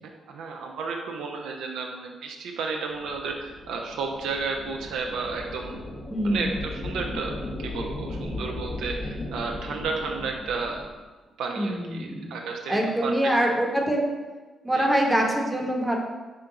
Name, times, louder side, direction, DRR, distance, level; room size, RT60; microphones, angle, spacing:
voice 1, 0.3-5.8 6.2-7.3 7.6-10.8 11.4-13.1 14.7-14.9, right 4 dB, 70° right, 1 dB, 0.3 m, -32 dB
sound 1, 2.9-11.0, left 1 dB, 45° left, 0.7 m, -36 dB
voice 2, 6.1-6.5 11.6-12.3 12.7-14.0 14.6-16.0, right 1 dB, 5° right, -1 dB, 0.8 m, -24 dB
3.7 x 2.3 x 3.8 m, 1.3 s
hypercardioid pair, 40°, 0 cm